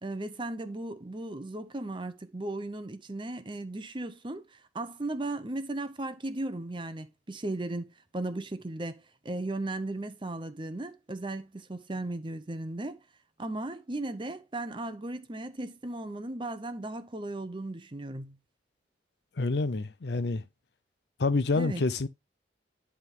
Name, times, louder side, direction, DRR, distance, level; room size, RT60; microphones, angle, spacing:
voice 1, 0.0-13.0 13.4-18.4 21.6-21.8, right 2 dB, 30° right, 0.8 m, -36 dB
voice 2, 19.4-20.4 21.2-22.1, left 3 dB, 70° left, 0.6 m, -27 dB
11.0 x 3.7 x 3.6 m
head